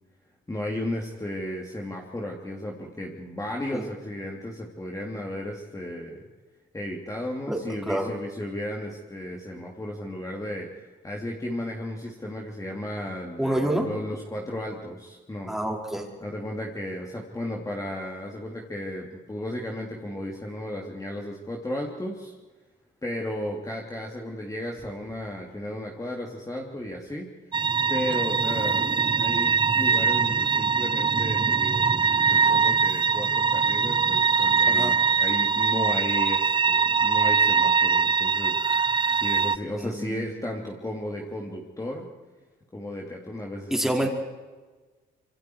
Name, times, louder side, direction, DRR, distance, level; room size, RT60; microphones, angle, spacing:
voice 1, 0.5-6.2 6.7-10.7 11.0-15.6 16.2-22.3 23.0-27.3 27.9-42.1 42.7-43.9, left 1 dB, 15° left, -1 dB, 3.4 m, -34 dB
voice 2, 13.4-13.9 15.5-16.1 34.7-35.0 39.8-40.3 43.7-44.1, right 1 dB, ahead, 0 dB, 5.1 m, -27 dB
sound 1, 27.5-39.6, right 5 dB, 25° right, 0.7 m, -22 dB
27.0 x 24.5 x 4.9 m, 1.3 s
cardioid pair, 90°, 20 cm